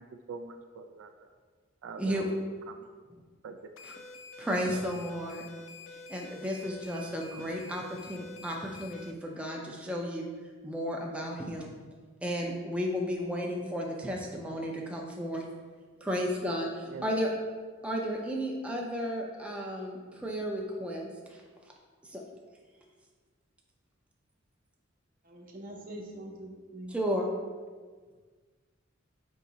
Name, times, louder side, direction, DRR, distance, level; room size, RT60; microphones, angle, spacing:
voice 1, 0.0-1.3 1.8-2.3 2.7-2.9 3.4-3.6 16.9-17.0, right 5 dB, 80° right, 7 dB, 0.3 m, -44 dB
sound 1, 3.8-9.1, left 2 dB, 75° left, 0.4 m, -48 dB
voice 2, 4.4-5.4 6.1-10.3 10.6-11.7 12.2-15.4 16.0-17.3 17.8-21.1 22.1-22.2 26.9-27.3, equal, 5° right, -1 dB, 0.4 m, -33 dB
voice 3, 25.2-27.0, right 1 dB, 45° right, 0 dB, 0.7 m, -44 dB
4.6 x 2.8 x 4.0 m, 1.5 s
head